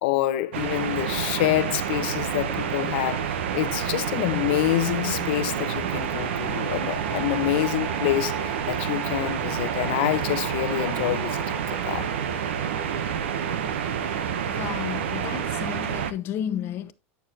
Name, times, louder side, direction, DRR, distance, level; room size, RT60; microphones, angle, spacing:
voice 1, 0.0-12.1, left 16 dB, 70° left, 0.9 m, -27 dB
sound 1, 0.5-16.1, right 8 dB, 85° right, 0.8 m, -28 dB
sound 2, 5.0-12.3, right 5 dB, 30° right, 4.0 m, -40 dB
voice 2, 14.4-16.9, left 10 dB, 40° left, 0.8 m, -32 dB
9.3 x 6.7 x 2.8 m
supercardioid pair, 135°, 6 cm